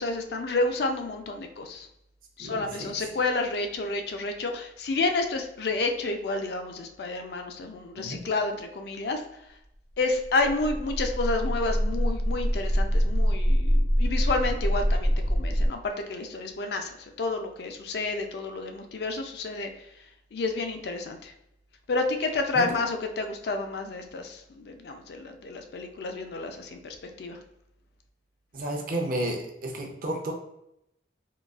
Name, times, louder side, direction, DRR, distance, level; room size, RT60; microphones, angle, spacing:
voice 1, 0.0-1.9 2.4-9.2 10.0-19.7 20.3-21.3 21.9-27.4, left 3 dB, 60° left, 5 dB, 0.4 m, -30 dB
voice 2, 2.4-2.9 8.0-8.2 22.5-22.7 28.5-30.3, right 1 dB, 50° right, 1 dB, 0.5 m, -32 dB
sound 1, 10.2-15.7, equal, 85° left, 1.1 m, -25 dB
3.8 x 2.3 x 2.3 m, 0.80 s
head